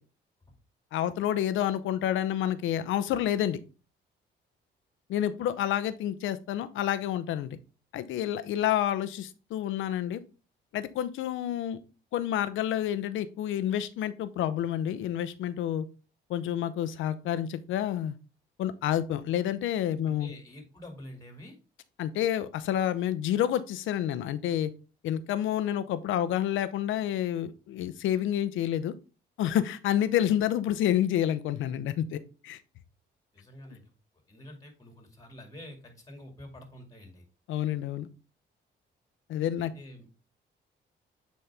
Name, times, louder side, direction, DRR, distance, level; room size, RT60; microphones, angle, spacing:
voice 1, 0.9-3.6 5.1-7.6 7.9-10.2 10.7-11.8 12.1-15.9 16.3-18.2 18.6-20.3 22.0-24.7 25.0-28.9 29.4-32.6 37.5-38.1 39.3-39.7, left 11 dB, 85° left, 14 dB, 0.7 m, -29 dB
voice 2, 20.1-21.6 33.3-33.9 34.3-37.2 39.6-40.1, left 1 dB, 15° left, 4 dB, 2.2 m, -47 dB
7.7 x 4.2 x 3.4 m, 0.33 s
cardioid pair, 90°, 20 cm